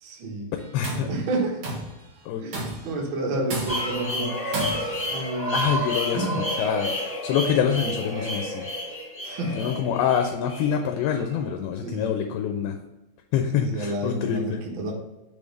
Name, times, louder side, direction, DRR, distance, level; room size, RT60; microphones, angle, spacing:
voice 1, 0.0-0.6 1.1-1.6 2.4-4.3 5.1-5.6 6.1-6.4 9.2-9.7 11.8-12.2 13.6-14.9, right 2 dB, 90° right, -1 dB, 1.1 m, -30 dB
Tools, 0.6-1.1 1.6-2.0 2.5-3.0 3.5-4.0 4.5-5.1, right 2 dB, 65° right, 2.5 m, -32 dB
voice 2, 0.7-1.1 2.3-2.7 3.9-4.3 5.5-6.3 6.6-8.7 9.6-12.8 13.3-14.6, left 8 dB, 85° left, 5 dB, 2.5 m, -26 dB
sound 1, 3.7-11.5, equal, 20° left, 1.5 m, -30 dB
6.5 x 3.5 x 5.2 m, 1.0 s
omnidirectional pair, 4.4 m